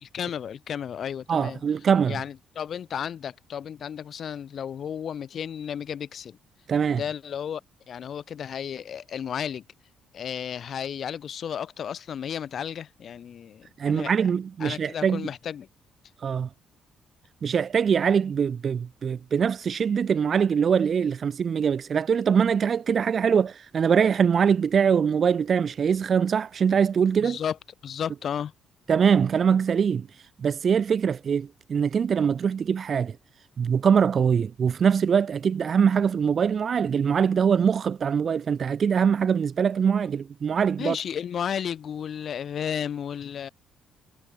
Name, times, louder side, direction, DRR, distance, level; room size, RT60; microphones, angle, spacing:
voice 1, 0.0-1.6 2.1-6.4 6.9-7.6 7.9-9.6 10.1-14.1 14.6-15.7 27.2-27.6 27.8-28.5 40.8-43.5, left 8 dB, 40° left, 1.2 m, -33 dB
voice 2, 1.3-2.2 6.7-7.0 13.8-15.3 16.2-16.5 17.4-27.4 28.9-30.1 30.4-33.2 33.6-41.0, right 7 dB, 35° right, 0.6 m, -23 dB
cardioid pair, 170°, 0 cm